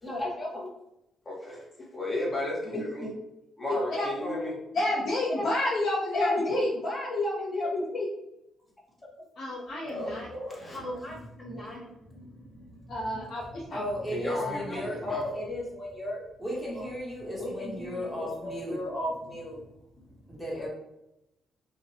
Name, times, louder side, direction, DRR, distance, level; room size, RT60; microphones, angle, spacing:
voice 1, 0.0-0.7 1.2-3.1 3.6-4.6 5.4-5.5 6.1-8.1 9.2-9.3 9.8-13.7 14.1-16.2 16.7-16.9 17.4-19.7 20.1-20.4, left 1 dB, 20° left, -3 dB, 0.8 m, -34 dB
voice 2, 4.7-6.7 9.4-10.3 11.7-11.8 12.9-13.8, left 1 dB, 55° left, -6 dB, 0.6 m, -29 dB
voice 3, 13.7-15.0 16.4-18.8 20.3-20.7, equal, 5° left, -5 dB, 1.1 m, -35 dB
2.5 x 2.1 x 2.6 m, 0.88 s
cardioid pair, 90°, 0 cm